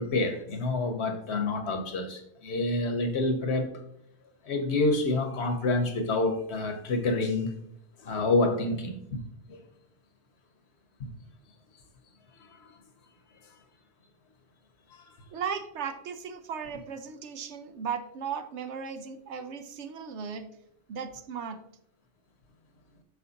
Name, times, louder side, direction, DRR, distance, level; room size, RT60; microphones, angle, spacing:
voice 1, 0.0-3.7 4.4-7.5 8.0-9.2 9.5-9.6 11.0-11.1, left 2 dB, 70° left, 7 dB, 1.2 m, -28 dB
voice 2, 15.3-20.5 20.9-21.6, right 6 dB, 80° right, 9 dB, 1.0 m, -36 dB
8.0 x 5.8 x 2.8 m, 0.73 s
omnidirectional pair, 1.2 m